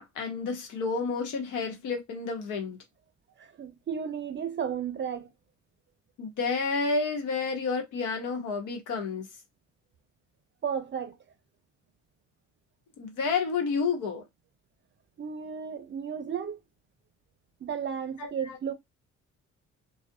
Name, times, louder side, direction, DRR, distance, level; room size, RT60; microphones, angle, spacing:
voice 1, 0.0-2.8 6.2-9.3 13.0-14.2 18.2-18.6, left 4 dB, 85° left, 0.8 m, -30 dB
voice 2, 3.4-5.3 10.6-11.2 15.2-16.6 17.6-18.7, right 7 dB, 40° right, 0.5 m, -33 dB
2.3 x 2.0 x 2.6 m
cardioid pair, 90°, 30 cm